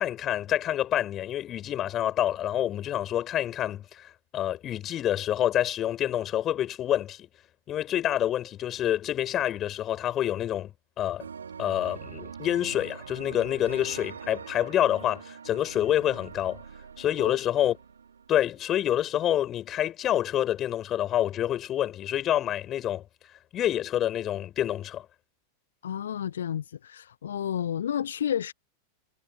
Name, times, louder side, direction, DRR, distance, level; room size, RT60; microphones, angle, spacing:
voice 1, 0.0-7.3 7.7-10.7 11.0-11.3 11.6-16.6 17.0-17.8 18.3-23.0 23.5-25.1, left 11 dB, 30° left, 5.5 m, -27 dB
sound 1, 11.2-18.8, right 6 dB, 70° right, 5.2 m, -43 dB
voice 2, 25.8-28.5, left 9 dB, 65° left, 1.4 m, -31 dB
figure-of-eight pair, 90°, 0 cm